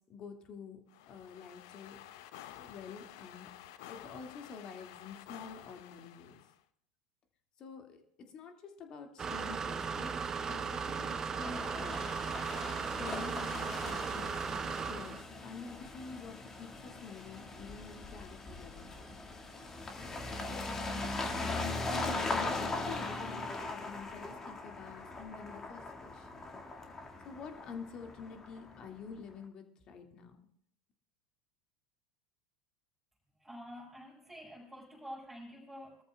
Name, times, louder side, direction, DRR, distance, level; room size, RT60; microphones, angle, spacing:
voice 1, 0.1-0.8 1.1-2.0 2.6-3.5 3.9-6.4 7.6-10.1 10.4-12.1 13.0-19.2 20.5-20.8 21.3-21.7 22.3-26.5 27.2-30.4, left 5 dB, 40° left, 4 dB, 2.1 m, -48 dB
sound 1, 0.9-6.6, left 12 dB, 60° left, 0.7 m, -51 dB
sound 2, 9.2-15.2, right 5 dB, 25° right, 0.8 m, -37 dB
sound 3, 11.4-29.0, left 3 dB, 20° left, 1.9 m, -40 dB
voice 2, 33.4-36.0, equal, 10° right, -6 dB, 5.6 m, -48 dB
23.5 x 13.5 x 2.3 m, 0.67 s
figure-of-eight pair, 80°, 2 cm